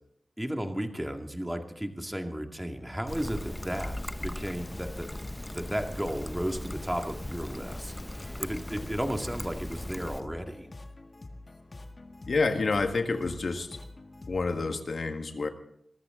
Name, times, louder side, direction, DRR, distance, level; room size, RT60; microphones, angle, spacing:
voice 1, 0.4-5.1 5.5-10.7, equal, 10° right, 4 dB, 2.1 m, -34 dB
sound 1, 3.1-14.8, left 2 dB, 45° left, 1.6 m, -46 dB
Trickle dribble, 3.1-10.2, left 1 dB, 15° left, 0.7 m, -39 dB
voice 2, 12.3-13.8 14.3-15.5, left 3 dB, 70° left, 6 dB, 1.7 m, -28 dB
22.5 x 13.5 x 3.8 m, 0.71 s
cardioid pair, 60°, 0 cm